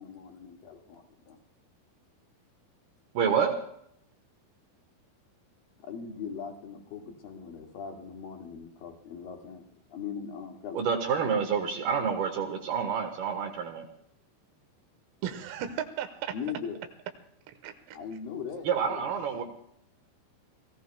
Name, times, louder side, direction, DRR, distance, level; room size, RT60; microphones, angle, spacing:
voice 1, 0.0-1.4 5.8-9.6 9.9-11.0 16.3-16.8 17.9-19.4, left 6 dB, 55° left, 2 dB, 3.1 m, -40 dB
voice 2, 3.1-3.6 10.7-13.9 18.6-19.4, right 6 dB, 65° right, 6 dB, 2.6 m, -28 dB
voice 3, 15.2-16.3 17.6-18.0, right 9 dB, 90° right, 8 dB, 4.0 m, -35 dB
29.5 x 19.5 x 2.3 m, 0.71 s
omnidirectional pair, 5.9 m